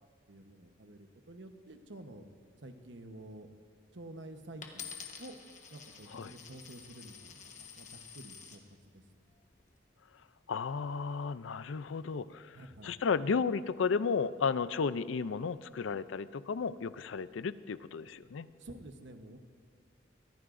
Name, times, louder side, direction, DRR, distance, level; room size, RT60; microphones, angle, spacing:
voice 1, 0.3-2.3 2.6-3.5 3.9-5.4 5.7-8.6 8.9-9.0 12.5-12.9 18.6-19.4, right 1 dB, 70° right, 7 dB, 1.0 m, -50 dB
Coin (dropping), 4.6-8.6 9.3-9.8, left 7 dB, 40° left, 1.2 m, -49 dB
voice 2, 10.5-12.6 12.8-18.5, left 5 dB, 85° left, 15 dB, 0.5 m, -33 dB
23.5 x 16.0 x 2.6 m, 2.1 s
head